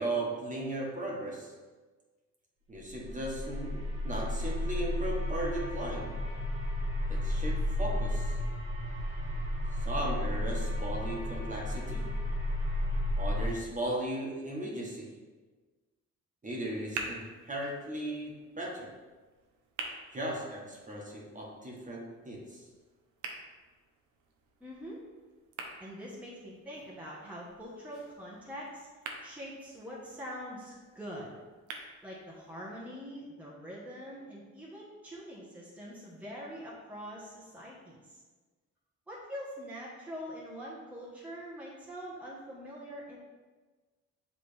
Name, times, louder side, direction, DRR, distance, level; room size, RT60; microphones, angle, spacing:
voice 1, 0.0-1.5 2.7-6.1 7.1-8.4 9.8-12.1 13.2-15.1 16.4-18.9 20.1-22.7, right 1 dB, 25° right, -3 dB, 1.6 m, -37 dB
sound 1, 2.8-13.5, left 1 dB, 40° right, 1.8 m, -33 dB
sound 2, 16.5-32.5, right 4 dB, 75° right, 0.9 m, -48 dB
voice 2, 24.6-25.0 25.8-28.9 29.2-31.4 32.0-38.2 39.1-43.2, equal, 5° right, -6 dB, 1.3 m, -44 dB
7.7 x 3.8 x 3.4 m, 1.3 s
cardioid pair, 90°, 30 cm